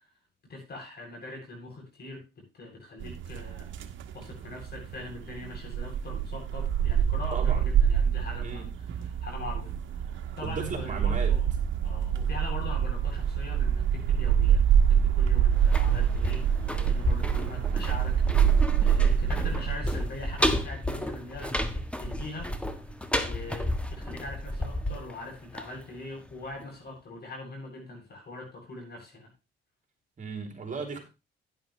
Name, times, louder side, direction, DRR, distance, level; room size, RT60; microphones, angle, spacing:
voice 1, 0.5-3.8 4.1-8.6 9.0-11.5 11.8-14.6 14.9-22.8 23.2-29.3, left 2 dB, 55° left, 1 dB, 7.9 m, -42 dB
sound 1, 3.0-19.8, right 8 dB, 75° right, 1.2 m, -26 dB
voice 2, 10.4-11.3 30.2-31.0, right 4 dB, 40° right, 3 dB, 3.4 m, -35 dB
sound 2, 15.5-26.3 26.6-26.7, left 1 dB, 5° left, 1.5 m, -32 dB
11.5 x 10.0 x 3.3 m, 0.28 s
cardioid pair, 90°, 20 cm